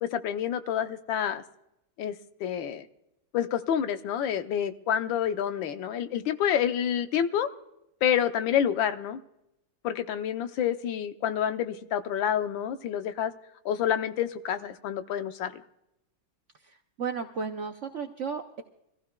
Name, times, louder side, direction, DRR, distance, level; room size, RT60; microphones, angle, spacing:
voice 1, 0.0-1.4 2.0-2.9 3.3-7.5 8.0-9.2 9.8-13.3 13.6-15.6, left 9 dB, 85° left, 9 dB, 1.5 m, -28 dB
voice 2, 17.0-18.6, right 5 dB, 75° right, 5 dB, 0.6 m, -33 dB
25.0 x 15.0 x 2.2 m, 0.85 s
omnidirectional pair, 2.1 m